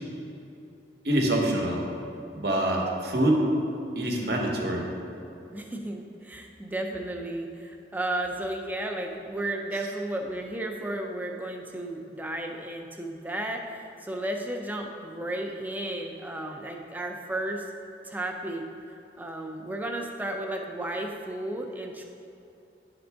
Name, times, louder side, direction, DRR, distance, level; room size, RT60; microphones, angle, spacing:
voice 1, 1.0-1.8 2.3-3.4 4.0-4.8, right 1 dB, 65° right, 0 dB, 0.9 m, -25 dB
voice 2, 5.5-17.7 18.0-18.7 19.2-22.0, right 1 dB, 10° right, 2 dB, 0.4 m, -33 dB
10.0 x 3.8 x 3.4 m, 2.8 s
head